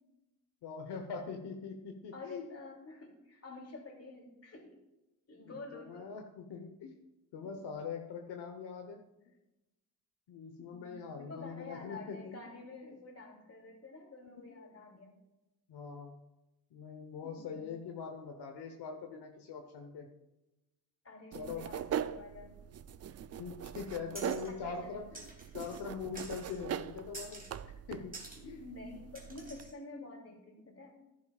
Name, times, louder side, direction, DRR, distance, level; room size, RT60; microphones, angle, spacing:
voice 1, 0.6-2.5 5.4-7.0 7.3-9.0 10.3-12.4 12.9-13.0 14.5-14.6 15.7-16.2 16.7-20.1 21.3-21.7 23.4-25.3 25.5-28.2 28.4-28.7, left 5 dB, 75° left, 3 dB, 1.1 m, -43 dB
voice 2, 2.1-4.8 5.3-6.0 7.4-7.5 10.6-15.2 17.2-17.7 21.0-22.5 24.5-25.1 28.4-30.9, left 3 dB, 35° left, 1 dB, 3.0 m, -49 dB
sound 1, 21.3-29.7, right 9 dB, 40° right, 0.4 m, -42 dB
sound 2, 24.1-24.5 25.1-25.8 26.1-26.6 27.1-27.6 28.1-28.4 29.1-29.7, right 2 dB, 20° right, 2.7 m, -49 dB
15.0 x 10.5 x 2.4 m, 0.98 s
cardioid pair, 85°, 41 cm